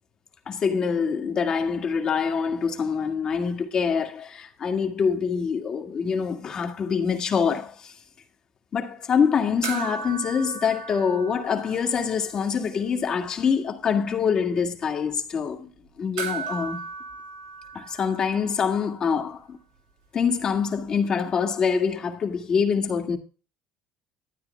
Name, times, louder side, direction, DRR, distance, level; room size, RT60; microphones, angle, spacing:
voice 1, 0.5-7.9 8.7-15.7 16.0-16.8 17.7-19.6 20.1-23.2, left 6 dB, 35° left, 2.1 m, -25 dB
sound 1, 9.6-12.3 12.5-12.6 16.2-18.8 20.9-21.0, right 6 dB, 90° right, 5.8 m, -36 dB
12.5 x 9.7 x 3.4 m
cardioid pair, 130°, 2 cm